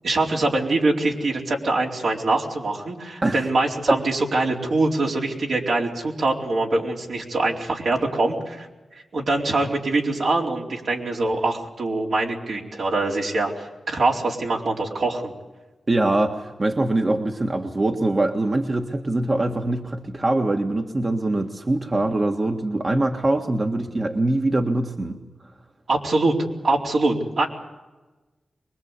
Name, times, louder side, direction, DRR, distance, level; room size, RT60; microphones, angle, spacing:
voice 1, 0.0-8.7 9.1-15.3 25.9-26.3 26.6-27.5, right 2 dB, 75° right, -2 dB, 4.4 m, -23 dB
voice 2, 15.9-25.2, right 2 dB, 40° right, 3 dB, 1.7 m, -23 dB
24.0 x 21.5 x 8.3 m, 1.2 s
cardioid pair, 50°, 0 cm